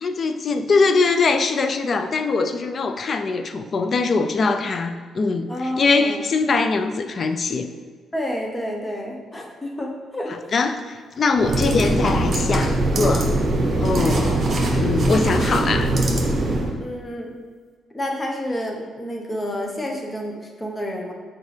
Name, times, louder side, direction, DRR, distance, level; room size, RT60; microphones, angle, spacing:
voice 1, 0.0-7.7 10.5-13.3 13.8-14.4 14.8-15.9, left 4 dB, 45° left, 8 dB, 0.4 m, -22 dB
voice 2, 5.5-6.2 8.1-10.4 11.3-11.6 16.8-17.3 17.9-21.1, equal, 20° left, 1 dB, 1.0 m, -29 dB
sound 1, 11.4-16.7, right 2 dB, 40° right, 1.1 m, -21 dB
6.6 x 4.7 x 3.3 m, 1.5 s
cardioid pair, 90°, 0 cm